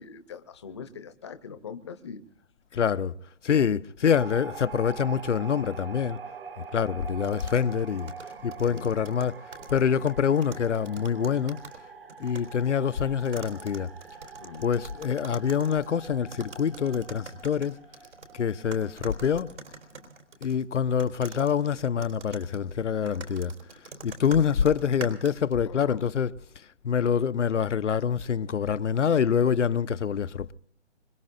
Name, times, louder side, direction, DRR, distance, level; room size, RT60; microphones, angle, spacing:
voice 1, 0.0-2.2 8.6-8.9 14.4-14.7 22.8-22.9 25.7-26.1, left 6 dB, 25° left, 0.7 m, -42 dB
voice 2, 2.7-3.1 3.4-6.2 6.7-8.1 8.4-9.4 9.7-11.6 12.2-13.9 14.6-17.8 18.3-19.5 20.4-23.5 24.0-26.3 26.8-30.5, left 7 dB, 85° left, 0.7 m, -25 dB
sound 1, 4.1-20.0, right 5 dB, 50° right, 1.3 m, -44 dB
sound 2, 7.2-11.8 12.1-12.5 13.2-18.3 18.7-20.6 21.0-25.5, right 3 dB, 80° right, 4.0 m, -44 dB
25.5 x 21.0 x 2.5 m
hypercardioid pair, 165°, 35 cm